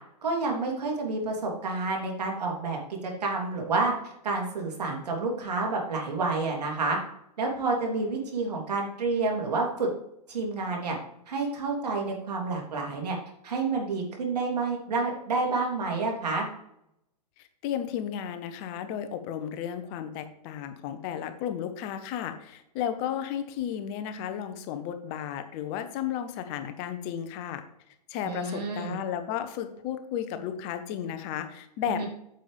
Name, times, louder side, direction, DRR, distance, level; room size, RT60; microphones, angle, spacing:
voice 1, 0.2-7.0 7.4-9.9 10.3-11.0 11.3-13.2 13.4-16.5 28.2-29.0 31.9-32.1, right 3 dB, 70° right, 0 dB, 3.2 m, -29 dB
voice 2, 17.4-27.6 28.1-32.0, left 9 dB, 35° left, 9 dB, 1.0 m, -33 dB
9.0 x 7.1 x 3.4 m, 0.76 s
hypercardioid pair, 120°, 21 cm